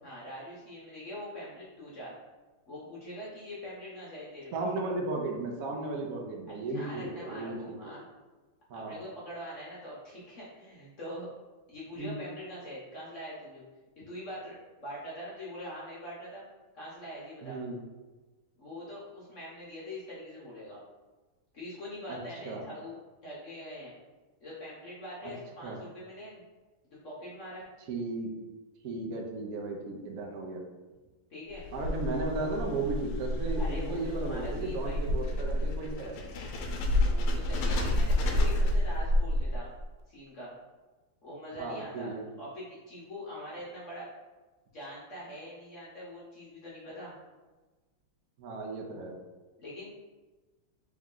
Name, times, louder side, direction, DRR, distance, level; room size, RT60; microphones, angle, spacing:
voice 1, 0.0-2.1 2.7-4.6 6.5-8.1 8.7-11.3 11.7-13.6 14.0-16.4 16.7-17.6 18.6-20.8 21.5-23.0 23.2-23.9 24.4-26.4 26.9-27.7 31.3-31.6 33.6-35.0 37.1-39.7 40.1-40.5 41.2-42.1 42.4-44.1 44.7-47.1 49.6-49.9, equal, 55° left, -7 dB, 0.9 m, -43 dB
voice 2, 4.5-7.8 8.7-9.0 12.0-12.1 17.4-17.8 22.1-22.2 22.4-22.6 25.2-25.3 25.6-25.8 27.9-28.3 28.8-30.6 31.7-36.2 41.5-42.2 48.4-49.2, right 3 dB, 75° right, 0 dB, 0.8 m, -35 dB
sound 1, 31.5-39.8, left 1 dB, 85° left, 1.5 m, -29 dB
3.5 x 3.1 x 3.7 m, 1.2 s
omnidirectional pair, 2.3 m